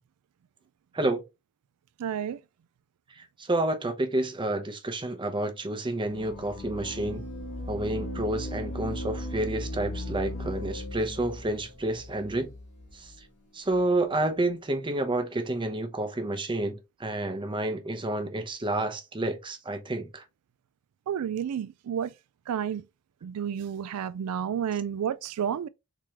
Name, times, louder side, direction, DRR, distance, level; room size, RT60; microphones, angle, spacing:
voice 1, 2.0-2.4 21.1-22.1 22.5-22.8 23.2-25.7, right 8 dB, 80° right, 0.3 m, -31 dB
voice 2, 3.4-7.2 7.7-12.5 12.9-13.1 13.5-20.2, right 1 dB, 20° right, 0.7 m, -29 dB
sound 1, 6.0-13.2, left 1 dB, 85° left, 1.3 m, -37 dB
3.6 x 3.1 x 2.9 m
head